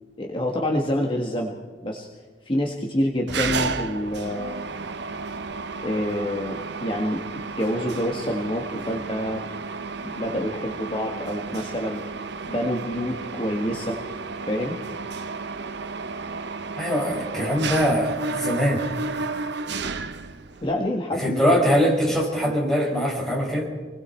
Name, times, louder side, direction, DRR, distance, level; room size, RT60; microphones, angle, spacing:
voice 1, 0.2-2.1 2.4-4.7 5.8-9.4 10.0-12.0 12.5-14.0 14.5-14.8 20.6-22.1 22.4-22.6, left 1 dB, 30° left, 1 dB, 1.6 m, -27 dB
Mechanisms, 3.3-20.7, right 4 dB, 65° right, 1.0 m, -32 dB
voice 2, 16.8-18.8 21.2-23.7, equal, ahead, -3 dB, 6.0 m, -22 dB
28.5 x 21.0 x 4.5 m, 1.5 s
head